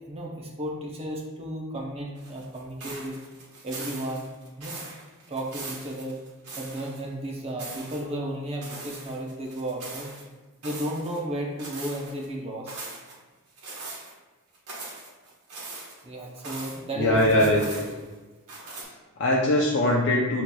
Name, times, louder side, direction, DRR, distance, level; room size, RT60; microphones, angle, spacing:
voice 1, 0.1-3.2 3.6-4.3 4.6-4.9 5.3-6.2 6.6-10.1 10.6-12.8 16.0-17.6, right 1 dB, 25° right, -1 dB, 0.6 m, -33 dB
sound 1, 2.2-7.0 7.3-8.0 8.6-10.2 10.6-11.2 11.6-12.3 12.7-13.1 13.6-14.1 14.5-16.8 17.1-18.1 18.5-18.8, right 3 dB, 90° right, 1.0 m, -41 dB
voice 2, 17.0-17.8 18.8-20.4, left 1 dB, 55° left, -3 dB, 0.4 m, -22 dB
6.3 x 2.9 x 2.2 m, 1.2 s
head